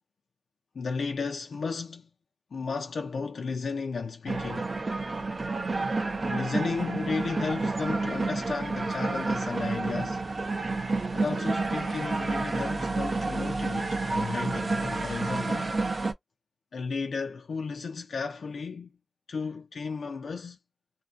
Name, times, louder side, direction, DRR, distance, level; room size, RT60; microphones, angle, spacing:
voice 1, 0.7-2.1 2.5-4.7 6.2-10.2 11.1-15.8 16.7-18.9 19.3-20.6, left 4 dB, 85° left, 0.4 m, -34 dB
sound 1, 4.3-16.1, right 3 dB, 45° right, 0.5 m, -30 dB
2.4 x 2.3 x 2.4 m
wide cardioid pair, 125°, 0 cm